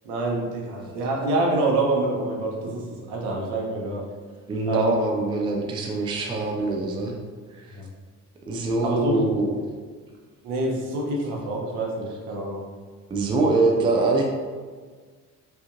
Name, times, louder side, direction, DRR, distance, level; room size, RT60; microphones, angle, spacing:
voice 1, 0.0-4.0 4.7-4.9 7.8-7.9 8.8-9.3 10.4-12.6, right 2 dB, 60° right, -1 dB, 0.9 m, -26 dB
voice 2, 4.5-7.2 7.5-7.8 8.4-9.5 13.1-14.2, right 2 dB, 10° right, 0 dB, 0.4 m, -23 dB
4.9 x 2.6 x 2.5 m, 1.5 s
figure-of-eight pair, 50°, 46 cm